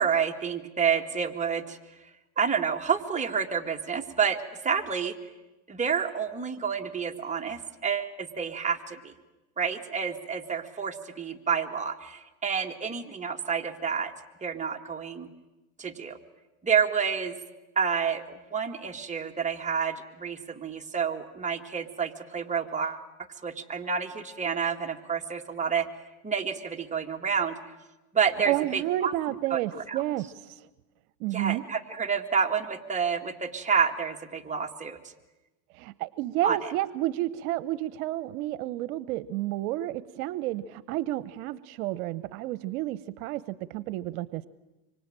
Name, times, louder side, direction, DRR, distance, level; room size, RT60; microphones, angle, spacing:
voice 1, 0.0-1.8 2.4-5.2 5.7-9.1 9.6-14.1 14.4-15.3 15.8-16.2 16.6-17.4 17.8-23.0 23.4-25.9 26.2-27.6 28.1-29.1 29.5-30.0 31.3-35.0 36.4-36.7, right 6 dB, 15° right, 2 dB, 2.1 m, -29 dB
voice 2, 28.5-30.5 31.2-31.6 35.7-44.5, right 15 dB, 75° right, 17 dB, 1.0 m, -31 dB
25.5 x 24.5 x 8.9 m, 1.1 s
supercardioid pair, 110°, 44 cm